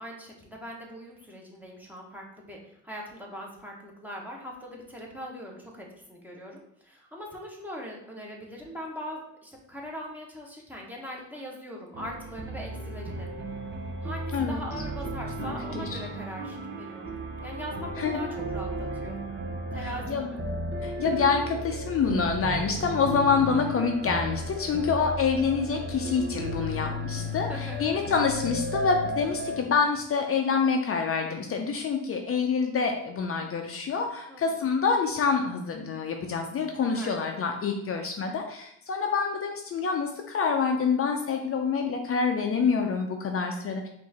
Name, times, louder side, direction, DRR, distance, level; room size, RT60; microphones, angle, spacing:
voice 1, 0.0-13.3 14.0-19.2 19.7-20.4 24.8-25.1 27.2-28.0 34.3-34.7 36.7-37.6, equal, 5° right, -2 dB, 1.2 m, -41 dB
sound 1, 11.9-29.6, right 1 dB, 40° right, 0.7 m, -34 dB
voice 2, 15.4-15.8 18.0-18.2 20.1-20.3 20.8-43.9, left 5 dB, 50° left, 3 dB, 0.6 m, -27 dB
4.6 x 2.7 x 4.2 m, 0.72 s
cardioid pair, 90°, 30 cm